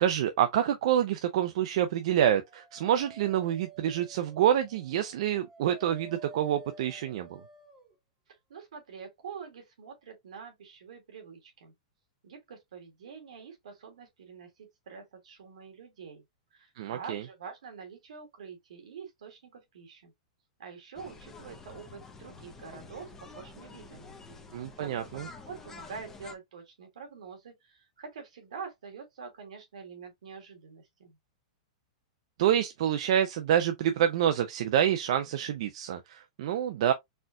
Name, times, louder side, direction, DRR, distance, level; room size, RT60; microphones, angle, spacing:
voice 1, 0.0-7.4 16.8-17.2 24.5-25.3 32.4-36.9, right 10 dB, 60° right, 0.5 m, -27 dB
Dog, 2.4-7.9, right 4 dB, 10° right, 0.9 m, -51 dB
voice 2, 8.5-11.7 12.2-16.2 16.5-20.1 20.6-24.2 24.8-25.1 25.5-31.2, right 6 dB, 80° right, 1.7 m, -46 dB
sound 1, 20.9-26.3, left 4 dB, 10° left, 0.6 m, -49 dB
4.2 x 2.3 x 2.6 m
hypercardioid pair, 145°, 4 cm